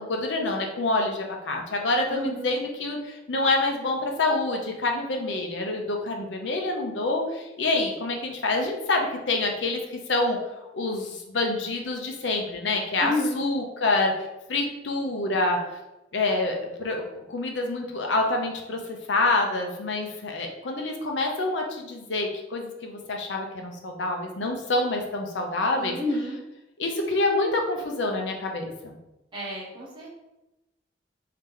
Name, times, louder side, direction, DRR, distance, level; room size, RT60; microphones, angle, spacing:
voice 1, 0.0-10.4 10.7-14.1 14.5-15.6 16.1-26.0 26.8-29.0, left 2 dB, 80° left, 2 dB, 0.7 m, -27 dB
voice 2, 2.1-2.5 13.0-13.5 25.8-26.4 29.3-30.1, left 1 dB, 25° right, -7 dB, 1.1 m, -30 dB
3.2 x 2.8 x 3.7 m, 0.97 s
head